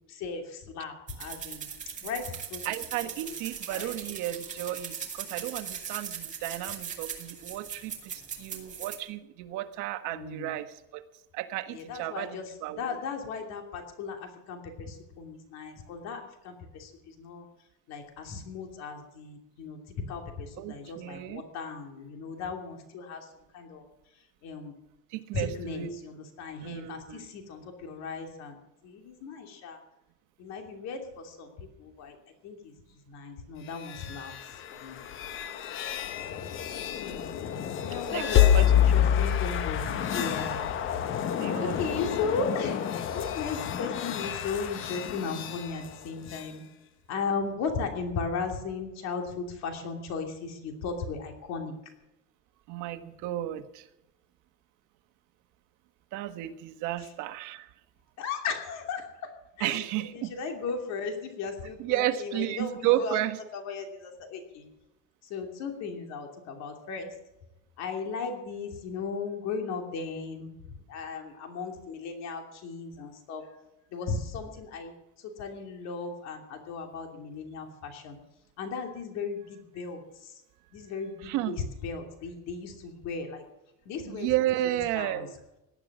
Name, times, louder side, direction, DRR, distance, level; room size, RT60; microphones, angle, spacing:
voice 1, 0.1-1.7 2.0-2.6 3.0-3.1 3.7-3.9 10.1-10.5 11.7-17.5 17.9-23.8 24.4-24.7 25.3-28.6 28.8-29.8 30.4-32.2 32.4-35.0 37.0-37.3 37.8-40.7 41.6-46.6 47.1-51.7 58.2-59.3 59.6-63.2 63.5-64.7 65.2-67.1 67.8-73.5 73.9-74.9 75.2-78.2 78.6-80.4 80.7-83.4 83.8-84.3 84.6-85.3, left 5 dB, 60° left, 4 dB, 2.9 m, -36 dB
sound 1, 1.1-9.0, right 7 dB, 25° right, 2.4 m, -39 dB
voice 2, 2.6-11.1 11.3-12.9 20.6-21.4 25.1-25.9 26.6-27.3 38.1-38.2 38.5-38.7 41.4-41.9 52.7-53.9 56.1-57.7 59.6-60.3 61.8-63.4 81.2-81.5 84.1-85.3, right 14 dB, 75° right, 10 dB, 1.4 m, -32 dB
sound 2, 33.7-46.5, left 10 dB, 40° left, 1.1 m, -28 dB
18.5 x 11.5 x 6.1 m, 0.92 s
cardioid pair, 175°, 30 cm